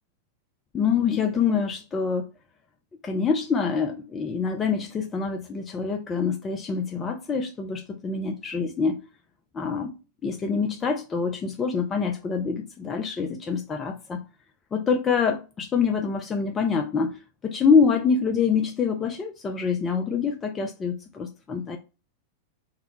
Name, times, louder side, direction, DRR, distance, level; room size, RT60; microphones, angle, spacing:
voice 1, 0.7-2.2 3.0-9.0 9.5-9.9 10.2-14.2 14.7-17.2 17.4-21.8, left 5 dB, 20° left, 0.3 m, -25 dB
2.3 x 2.0 x 3.0 m
figure-of-eight pair, 90°, 0 cm